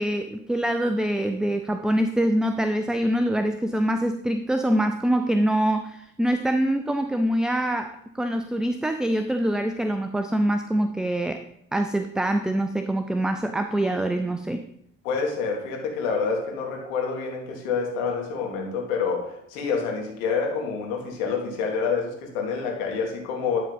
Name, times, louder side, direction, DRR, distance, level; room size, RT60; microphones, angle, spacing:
voice 1, 0.0-11.4 11.7-14.6, right 1 dB, ahead, 7 dB, 0.3 m, -24 dB
voice 2, 15.0-23.6, left 5 dB, 70° left, 0 dB, 2.0 m, -27 dB
11.5 x 3.8 x 5.5 m, 0.75 s
figure-of-eight pair, 55°, 41 cm